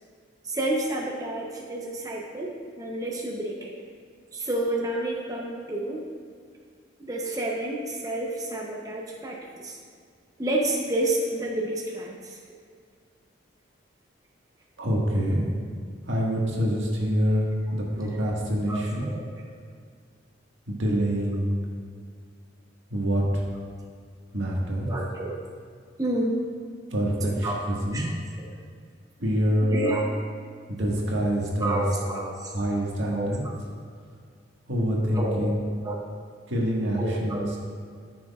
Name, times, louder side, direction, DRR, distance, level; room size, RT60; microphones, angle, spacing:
voice 1, 0.5-3.7 4.3-6.0 7.0-9.8 10.4-12.4 18.0-18.1 18.7-19.2 24.9-25.4 26.0-26.4 27.2-27.6 27.9-28.1 28.4-28.5 29.7-30.0 31.6-32.5 33.1-33.3 35.1-35.5 35.8-36.0 36.9-37.5, right 1 dB, 20° right, -2 dB, 0.7 m, -29 dB
voice 2, 14.8-15.5 16.1-19.1 20.7-21.6 22.9-23.4 24.3-24.9 26.9-28.1 29.2-29.8 30.7-31.8 32.5-33.4 34.7-35.7 36.5-37.6, equal, 80° right, -3 dB, 1.6 m, -26 dB
13.5 x 6.2 x 2.4 m, 2.1 s
head